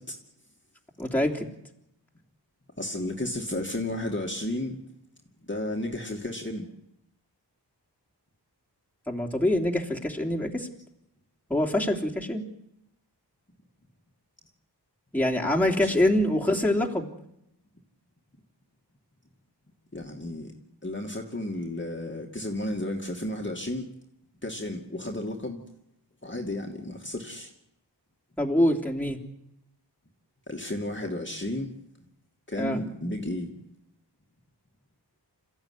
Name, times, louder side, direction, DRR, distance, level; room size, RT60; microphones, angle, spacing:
voice 1, 1.0-1.5 9.1-10.7 11.5-12.4 15.1-17.1 28.4-29.2 32.6-32.8, left 1 dB, 5° left, -2 dB, 3.2 m, -25 dB
voice 2, 2.8-4.8 5.4-6.7 15.8-15.9 19.9-20.6 20.8-23.9 24.4-25.6 26.2-27.5 30.5-31.7 32.5-33.5, left 1 dB, 25° left, 0 dB, 2.5 m, -33 dB
27.5 x 14.5 x 9.8 m, 0.82 s
wide cardioid pair, 75°, 42 cm